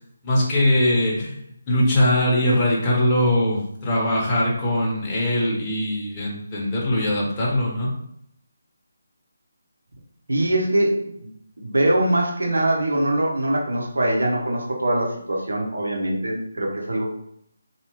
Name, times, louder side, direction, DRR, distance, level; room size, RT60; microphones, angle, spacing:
voice 1, 0.2-1.4 1.7-7.9, left 1 dB, 25° left, -4 dB, 0.9 m, -21 dB
voice 2, 10.3-11.3 11.6-17.1, right 1 dB, 75° right, -1 dB, 0.9 m, -22 dB
2.8 x 2.3 x 3.1 m, 0.73 s
figure-of-eight pair, 150°, 0 cm